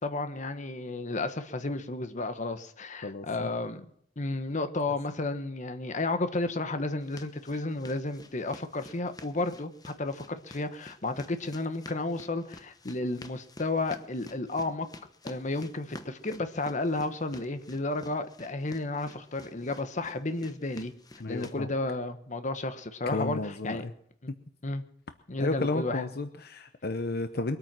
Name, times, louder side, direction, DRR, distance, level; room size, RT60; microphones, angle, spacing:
voice 1, 0.0-3.9 4.2-14.9 15.2-20.9 21.3-23.8 24.2-24.3 24.6-24.8 25.3-26.1, left 2 dB, 45° left, 9 dB, 1.1 m, -32 dB
voice 2, 3.0-3.5 21.2-21.7 23.1-23.9 25.4-27.6, left 2 dB, 60° left, 9 dB, 0.8 m, -32 dB
sound 1, 7.0-21.6, left 2 dB, 20° left, 0.9 m, -50 dB
23.0 x 8.9 x 6.1 m, 0.68 s
head